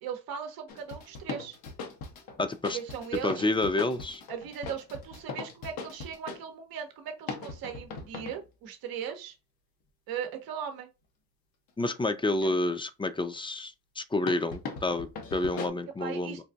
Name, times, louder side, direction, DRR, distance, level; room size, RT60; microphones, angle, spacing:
voice 1, 0.0-1.6 2.7-3.5 4.3-9.4 10.1-10.9 12.4-12.5 16.0-16.4, right 8 dB, 90° right, 0.7 m, -38 dB
sound 1, 0.7-6.4 7.3-8.4 14.3-15.7, left 4 dB, 90° left, 0.7 m, -40 dB
voice 2, 2.4-2.8 3.2-4.2 11.8-16.4, left 2 dB, 15° left, 0.4 m, -29 dB
4.0 x 2.5 x 2.2 m
cardioid pair, 65°, 35 cm